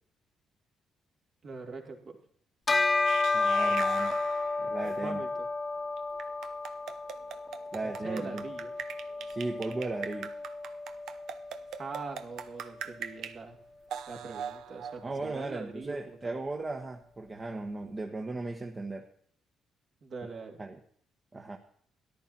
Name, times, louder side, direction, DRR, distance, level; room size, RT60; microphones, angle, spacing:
voice 1, 1.4-2.2 5.0-5.5 7.8-8.7 11.8-13.6 14.1-16.4 20.0-20.6, right 4 dB, 55° right, 2 dB, 2.9 m, -42 dB
Bell, 2.7-12.4, left 3 dB, 30° left, 1.0 m, -32 dB
sound 1, 3.1-5.0 6.0-13.4 13.9-15.6, right 8 dB, 80° right, 0.8 m, -42 dB
voice 2, 3.3-4.2 4.6-5.2 7.7-8.4 9.3-10.3 15.0-19.1 20.6-20.8 21.3-21.6, right 2 dB, 30° right, 3 dB, 1.2 m, -36 dB
13.5 x 11.0 x 4.3 m, 0.62 s
cardioid pair, 90°, 0 cm